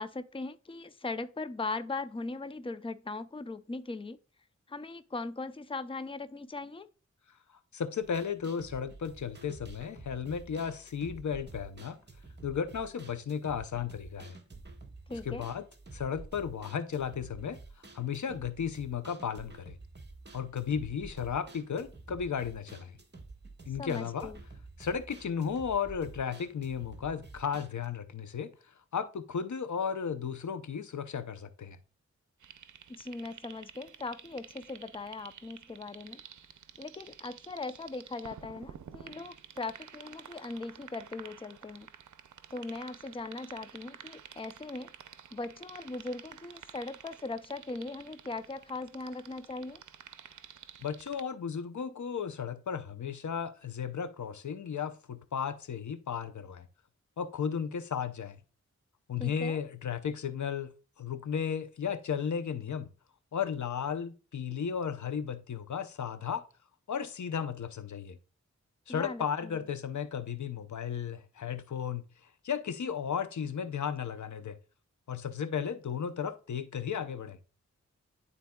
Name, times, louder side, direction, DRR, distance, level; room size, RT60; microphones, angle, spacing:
voice 1, 0.0-4.2 4.7-6.9 15.1-15.5 23.8-24.4 32.9-36.2 36.8-41.9 42.5-44.9 45.3-49.8 59.2-59.6 68.9-69.6, left 3 dB, 20° left, 0.6 m, -39 dB
voice 2, 7.7-12.0 12.4-14.4 15.3-15.6 15.9-17.6 17.9-19.8 20.3-23.0 23.7-24.3 24.8-31.8 50.8-56.7 57.2-58.4 59.1-60.7 61.0-62.9 63.3-66.4 66.9-68.2 68.9-72.0 72.4-74.6 75.1-77.4, left 7 dB, 75° left, 0.8 m, -34 dB
sound 1, 8.0-27.9, right 3 dB, 35° right, 1.4 m, -50 dB
sound 2, 32.4-51.2, right 8 dB, 85° right, 0.6 m, -51 dB
12.0 x 4.1 x 2.3 m
wide cardioid pair, 65°, 29 cm